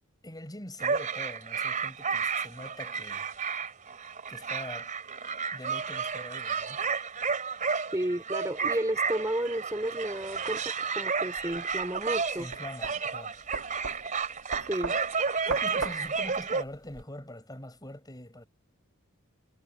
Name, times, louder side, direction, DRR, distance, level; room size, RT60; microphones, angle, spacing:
voice 1, 0.2-3.3 4.3-4.9 5.5-6.8 7.4-7.6 12.3-13.4 15.5-18.5, left 1 dB, 20° left, 5.8 m, -44 dB
sound 1, 0.8-16.6, right 5 dB, 35° right, 3.3 m, -32 dB
voice 2, 7.9-12.5 14.7-14.9, right 1 dB, 15° right, 4.0 m, -32 dB
sound 2, 11.4-17.0, right 4 dB, 65° right, 2.6 m, -39 dB
head